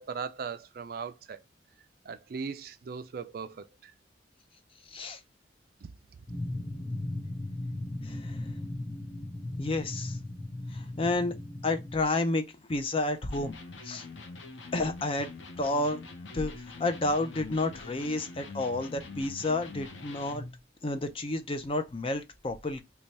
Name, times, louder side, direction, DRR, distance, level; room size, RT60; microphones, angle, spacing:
voice 1, 0.0-1.4 2.1-3.9, right 5 dB, 50° right, 0.4 m, -38 dB
voice 2, 4.9-5.2 8.0-8.5 9.6-10.2 10.7-11.3 11.6-13.5 13.8-14.0 14.7-15.3 15.6-16.0 16.3-20.4 20.8-22.8, left 2 dB, 30° left, 0.4 m, -30 dB
sound 1, 6.3-12.0, left 1 dB, 50° left, 1.0 m, -37 dB
Electric guitar, 13.3-20.6, left 3 dB, 90° left, 0.8 m, -44 dB
3.2 x 2.3 x 4.0 m
head